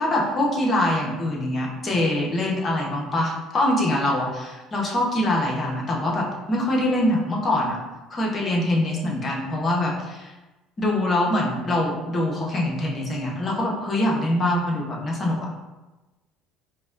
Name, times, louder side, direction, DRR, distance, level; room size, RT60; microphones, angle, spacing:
voice 1, 0.0-7.8 8.1-10.3 10.8-15.5, left 1 dB, 30° left, -2 dB, 0.8 m, -24 dB
4.8 x 2.2 x 2.4 m, 1.1 s
cardioid pair, 110°, 0 cm